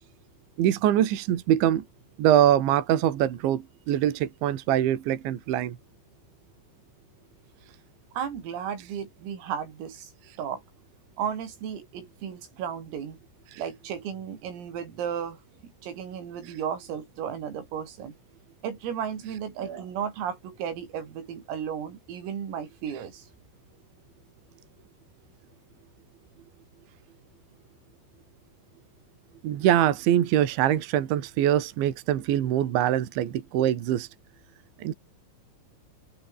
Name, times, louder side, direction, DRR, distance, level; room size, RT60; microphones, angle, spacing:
voice 1, 0.6-1.8 2.2-5.8 13.5-13.6 16.5-16.6 29.4-34.1 34.8-34.9, right 11 dB, 65° right, 4.3 m, -23 dB
voice 2, 8.1-10.1 10.4-10.6 11.2-13.2 13.6-15.4 15.6-18.1 18.6-23.3, right 8 dB, 90° right, 6.8 m, -34 dB
open air
omnidirectional pair, 5.9 m